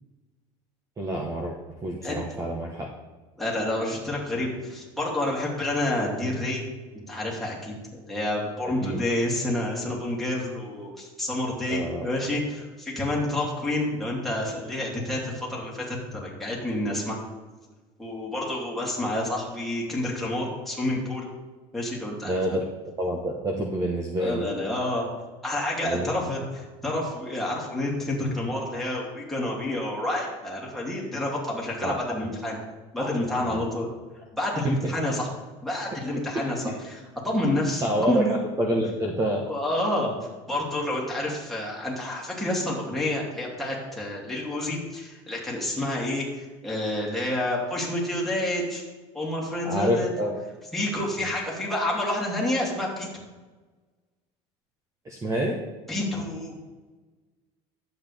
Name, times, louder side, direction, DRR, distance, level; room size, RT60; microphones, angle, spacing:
voice 1, 1.0-1.6 1.8-2.9 8.6-9.0 11.7-12.1 22.2-22.6 23.0-24.4 25.8-26.1 31.8-31.9 33.0-33.1 33.4-33.6 34.8-34.9 36.6-36.8 37.8-39.4 49.6-50.3 51.2-51.3 55.0-55.6, right 1 dB, 25° right, 0 dB, 1.2 m, -27 dB
voice 2, 2.0-2.4 3.4-6.6 7.1-17.2 18.0-21.3 21.7-22.6 24.2-25.1 25.4-32.6 32.9-33.9 34.3-35.3 35.6-38.4 39.5-40.1 40.5-48.8 49.1-50.1 50.7-53.1 55.9-56.5, left 1 dB, ahead, -4 dB, 2.8 m, -29 dB
11.5 x 8.1 x 3.5 m, 1.3 s
cardioid pair, 130°, 14 cm